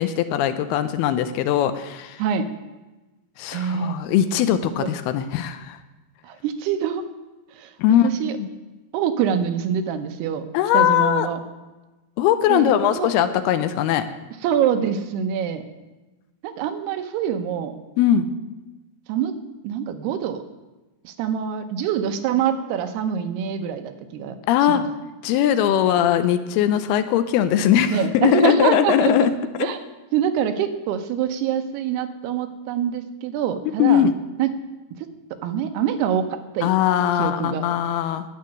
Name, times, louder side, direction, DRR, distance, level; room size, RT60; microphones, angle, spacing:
voice 1, 0.0-2.2 3.4-5.8 7.8-8.1 8.4-8.5 10.5-11.3 12.2-14.0 18.0-18.3 24.5-24.8 25.2-29.7 33.8-34.1 36.6-38.2, left 10 dB, 80° left, 11 dB, 2.5 m, -20 dB
voice 2, 3.5-4.0 4.8-4.9 6.2-7.1 7.6-7.7 8.0-8.3 8.9-10.4 10.7-11.4 12.5-13.1 14.4-15.7 16.4-17.8 19.1-19.3 19.6-20.4 21.0-24.4 24.6-24.8 27.9-29.3 29.6-29.8 30.1-34.1 34.4-34.5 35.4-36.7 37.2-37.6, right 8 dB, 80° right, 8 dB, 2.9 m, -25 dB
10.5 x 7.7 x 9.7 m, 1.1 s
omnidirectional pair, 4.7 m